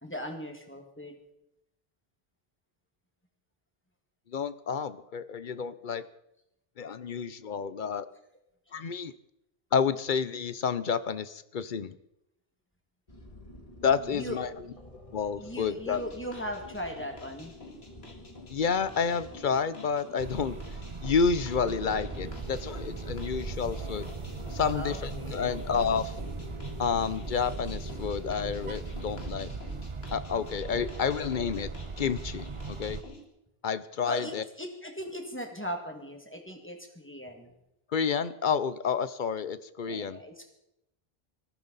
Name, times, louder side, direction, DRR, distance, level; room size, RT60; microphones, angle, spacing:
voice 1, 0.0-1.1 14.1-14.4 15.4-17.5 24.7-25.6 34.1-37.5 39.9-40.5, equal, 10° left, 2 dB, 2.2 m, -38 dB
voice 2, 4.3-6.0 6.8-8.1 8.7-9.1 9.7-12.0 13.8-14.5 15.1-16.0 18.5-20.6 21.0-24.1 24.5-26.1 26.8-29.5 30.1-31.7 32.0-33.0 33.6-34.4 37.9-40.2, left 6 dB, 55° left, 14 dB, 0.8 m, -30 dB
sound 1, 13.1-29.6, left 1 dB, 35° left, 2.2 m, -47 dB
sound 2, 15.9-33.2, left 3 dB, 75° left, 2.1 m, -51 dB
sound 3, 20.2-33.0, right 4 dB, 30° right, 0.8 m, -39 dB
19.0 x 14.5 x 4.1 m, 0.84 s
omnidirectional pair, 1.1 m